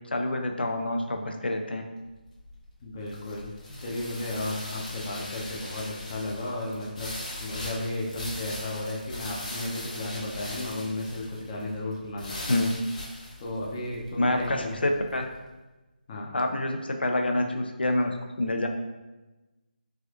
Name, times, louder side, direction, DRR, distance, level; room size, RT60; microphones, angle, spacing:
voice 1, 0.1-1.8 12.5-12.7 14.2-15.3 16.3-18.7, left 1 dB, 90° left, 4 dB, 0.4 m, -27 dB
sound 1, 2.1-15.3, left 1 dB, 50° left, 1.0 m, -40 dB
voice 2, 2.8-3.5 3.8-7.1 7.4-12.6 13.4-14.8 16.1-16.4, left 1 dB, 25° left, -3 dB, 0.5 m, -34 dB
3.3 x 2.5 x 2.4 m, 1.1 s
figure-of-eight pair, 160°, 5 cm